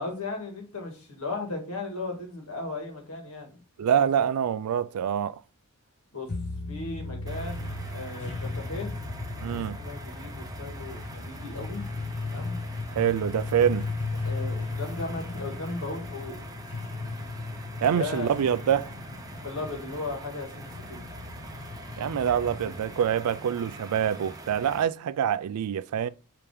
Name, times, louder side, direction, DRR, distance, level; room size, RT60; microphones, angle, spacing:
voice 1, 0.0-4.1 6.1-6.3 6.7-8.9 9.3-11.8 12.2-12.6 14.2-16.4 17.8-18.3 19.4-21.0 22.6-23.1, left 3 dB, 75° left, 1.7 m, -37 dB
voice 2, 3.8-5.4 9.4-9.8 13.0-13.9 17.8-18.9 22.0-26.1, right 8 dB, 90° right, 0.3 m, -25 dB
sound 1, 6.3-23.1, left 3 dB, 50° left, 0.6 m, -36 dB
sound 2, 7.3-24.8, right 2 dB, 15° right, 0.6 m, -44 dB
5.0 x 2.8 x 3.5 m
head